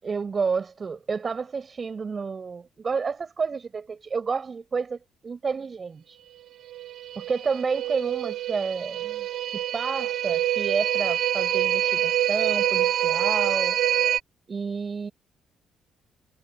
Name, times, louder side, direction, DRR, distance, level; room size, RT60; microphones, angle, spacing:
voice 1, 0.0-6.2 7.1-9.3 9.5-13.8 14.5-15.1, right 5 dB, 40° right, 6.5 m, -30 dB
sound 1, 6.7-14.2, right 11 dB, 70° right, 2.2 m, -26 dB
cardioid pair, 90°, 0 cm